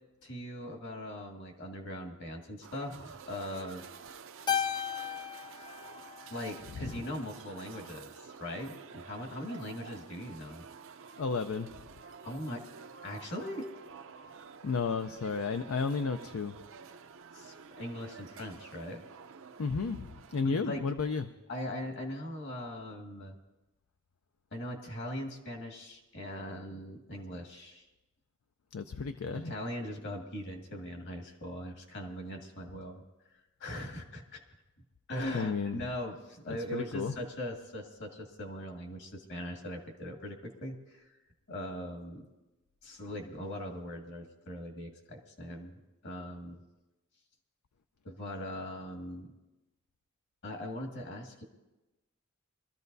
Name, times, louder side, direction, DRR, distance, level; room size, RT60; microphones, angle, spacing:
voice 1, 0.2-3.8 6.3-10.7 12.3-12.6 13.0-13.7 17.3-19.0 20.4-20.9 21.5-23.4 24.5-27.8 29.3-33.0 33.6-34.4 35.1-41.0 41.5-42.3 42.8-45.7 46.0-46.6 48.0-49.3 50.4-51.4, left 1 dB, 55° left, 2 dB, 2.0 m, -40 dB
sound 1, 2.6-20.5, right 6 dB, 65° right, 0.6 m, -50 dB
Keyboard (musical), 4.5-7.0, left 8 dB, 20° left, 0.4 m, -35 dB
voice 2, 11.2-11.7 14.6-16.6 19.6-21.2 28.7-29.5 35.3-35.8 36.7-37.1, left 4 dB, 75° left, 8 dB, 0.5 m, -32 dB
23.5 x 13.5 x 2.7 m, 1.0 s
head